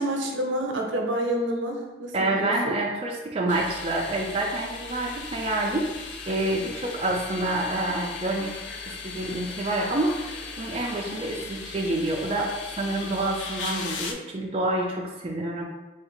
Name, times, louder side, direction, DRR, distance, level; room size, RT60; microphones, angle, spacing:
voice 1, 0.0-2.8, right 1 dB, 75° right, 2 dB, 0.6 m, -28 dB
voice 2, 2.1-10.2 10.6-15.6, right 2 dB, 30° right, -2 dB, 0.3 m, -28 dB
sound 1, 3.5-14.1, left 5 dB, 75° left, 0.4 m, -38 dB
3.4 x 2.3 x 3.6 m, 1.1 s
head